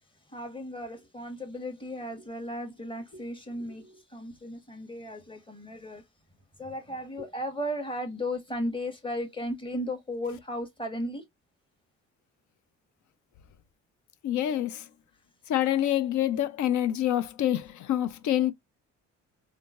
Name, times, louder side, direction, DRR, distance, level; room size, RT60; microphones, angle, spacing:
voice 1, 0.3-6.0 6.6-11.2, left 1 dB, 15° left, 1.3 m, -35 dB
voice 2, 14.2-14.9 15.5-18.5, left 12 dB, 70° left, 0.6 m, -26 dB
3.7 x 2.6 x 2.4 m
cardioid pair, 90°, 30 cm